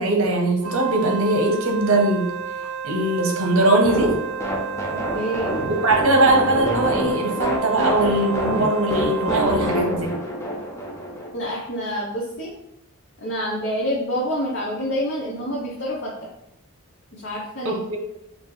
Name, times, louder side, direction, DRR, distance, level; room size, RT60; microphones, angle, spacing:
voice 1, 0.0-2.3 2.8-4.2 5.8-10.1 17.6-18.0, right 2 dB, 65° right, 2 dB, 0.8 m, -20 dB
Wind instrument woodwind instrument, 0.6-9.9, right 6 dB, 90° right, 0.5 m, -31 dB
sound 1, 3.8-11.3, equal, 15° left, 0.5 m, -27 dB
voice 2, 4.9-5.6 11.3-12.5 13.2-16.3 17.1-17.8, equal, 55° left, -5 dB, 0.7 m, -27 dB
4.3 x 2.6 x 3.1 m, 0.83 s
head